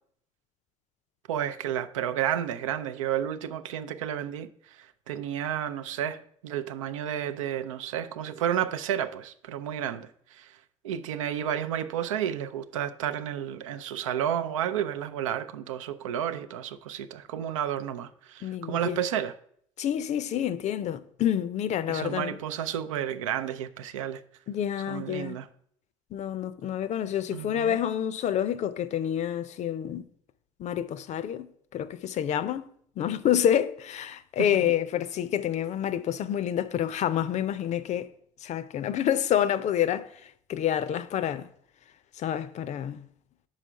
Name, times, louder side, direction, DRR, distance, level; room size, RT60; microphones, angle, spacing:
voice 1, 1.3-10.6 10.8-19.3 21.9-24.2 24.9-25.5 27.3-27.8 34.5-34.7, right 10 dB, 85° right, 0.4 m, -31 dB
voice 2, 18.4-19.0 19.8-22.4 24.5-25.4 26.1-30.0 30.6-32.7 33.0-38.1 38.4-41.5 42.2-43.0, left 10 dB, 45° left, 0.5 m, -28 dB
5.1 x 4.8 x 5.5 m
hypercardioid pair, 65°, 16 cm